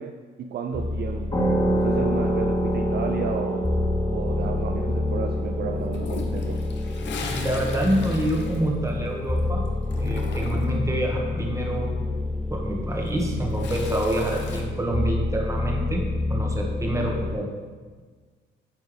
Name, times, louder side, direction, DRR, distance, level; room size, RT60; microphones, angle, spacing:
voice 1, 0.0-1.5 1.7-3.7 4.1-6.6, right 6 dB, 55° right, 4 dB, 0.4 m, -32 dB
sound 1, 0.7-17.4, left 2 dB, 5° left, 0.5 m, -28 dB
sound 2, 1.3-10.5, right 1 dB, 25° left, 1.8 m, -29 dB
Toilet flush, 5.9-9.4 9.6-10.8 12.9-14.6, left 4 dB, 65° left, 0.9 m, -38 dB
voice 2, 7.2-9.6 9.9-11.9 12.5-16.0 16.3-17.5, right 1 dB, 15° right, -1 dB, 1.4 m, -27 dB
8.9 x 4.4 x 3.4 m, 1.5 s
cardioid pair, 90°, 20 cm